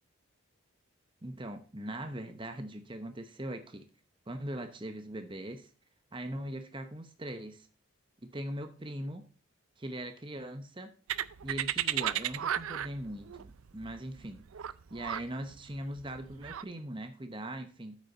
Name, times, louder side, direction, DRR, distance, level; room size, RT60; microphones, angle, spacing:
voice 1, 1.2-3.8 4.3-5.7 6.1-7.7 8.2-9.2 9.8-10.9 11.4-14.4 14.9-18.0, right 1 dB, 25° right, 7 dB, 0.9 m, -40 dB
sound 1, 11.1-16.6, right 10 dB, 75° right, 0.4 m, -34 dB
9.1 x 8.3 x 3.9 m, 0.36 s
head